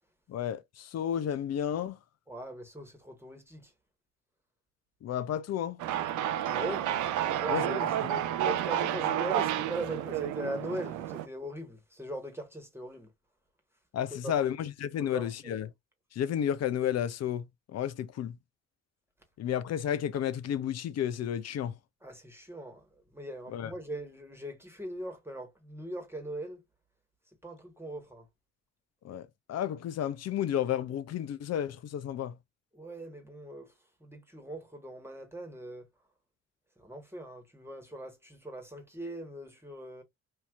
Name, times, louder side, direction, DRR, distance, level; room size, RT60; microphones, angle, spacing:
voice 1, 0.3-2.0 5.0-5.8 7.5-8.2 13.9-15.7 16.1-17.5 17.7-18.4 19.4-21.7 23.5-23.7 29.0-32.4, left 10 dB, 50° left, 0.7 m, -32 dB
voice 2, 2.3-3.7 6.5-6.9 7.2-8.2 8.4-13.1 14.1-14.5 15.0-15.6 22.0-26.6 27.4-28.3 32.7-33.7 34.0-35.9 36.8-40.0, right 1 dB, 5° right, 1.4 m, -40 dB
sound 1, 5.8-11.3, right 11 dB, 60° right, 0.6 m, -30 dB
4.3 x 2.8 x 2.4 m
hypercardioid pair, 45°, 34 cm